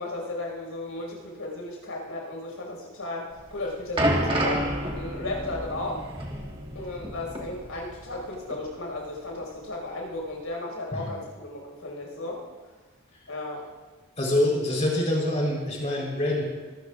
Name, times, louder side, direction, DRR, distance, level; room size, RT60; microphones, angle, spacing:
voice 1, 0.0-4.7 4.9-6.1 6.7-12.4 13.3-13.6, left 2 dB, 85° left, -1 dB, 5.2 m, -35 dB
sound 1, 3.4-8.3 8.5-8.7 9.4-9.5, right 1 dB, 25° right, 1.5 m, -29 dB
voice 2, 14.2-16.4, left 1 dB, 30° left, -2 dB, 3.9 m, -25 dB
25.5 x 13.5 x 2.5 m, 1.3 s
head